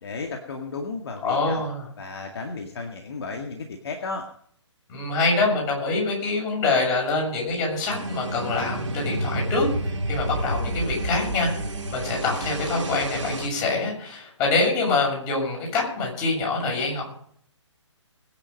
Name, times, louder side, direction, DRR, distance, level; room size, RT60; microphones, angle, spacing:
voice 1, 0.0-1.6 2.0-4.3, left 4 dB, 55° left, 3 dB, 2.1 m, -34 dB
voice 2, 1.2-1.9 4.9-9.7 10.1-11.5 11.9-17.0, left 3 dB, 20° left, -1 dB, 7.2 m, -25 dB
sound 1, 7.9-13.5, right 1 dB, 75° right, 2.3 m, -29 dB
21.0 x 9.9 x 5.4 m, 0.64 s
figure-of-eight pair, 135°, 16 cm